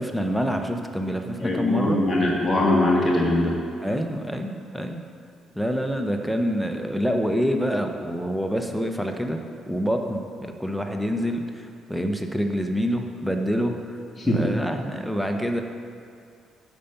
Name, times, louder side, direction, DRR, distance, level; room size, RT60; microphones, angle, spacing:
voice 1, 0.0-2.0 3.8-5.0 5.5-9.4 9.7-13.8 14.2-15.6, equal, ahead, 4 dB, 1.0 m, -26 dB
voice 2, 1.4-3.6 14.2-14.5, left 1 dB, 15° left, -4 dB, 1.7 m, -21 dB
12.5 x 5.1 x 5.9 m, 2.5 s
cardioid pair, 85°, 0 cm